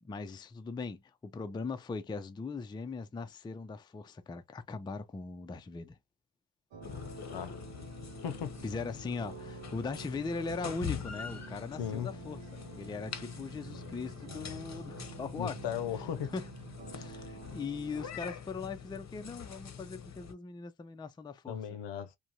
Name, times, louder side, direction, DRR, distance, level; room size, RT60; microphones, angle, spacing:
voice 1, 0.0-6.0 8.6-15.6 16.3-16.5 16.9-21.8, left 4 dB, 10° left, 0.3 m, -40 dB
sound 1, 6.7-18.1, right 6 dB, 75° right, 0.8 m, -49 dB
sound 2, 6.8-20.3, left 7 dB, 35° left, 0.7 m, -44 dB
voice 2, 8.2-8.6 11.8-12.1 15.4-16.3 21.5-22.2, left 9 dB, 70° left, 0.6 m, -36 dB
2.5 x 2.2 x 2.8 m
supercardioid pair, 65°, 44 cm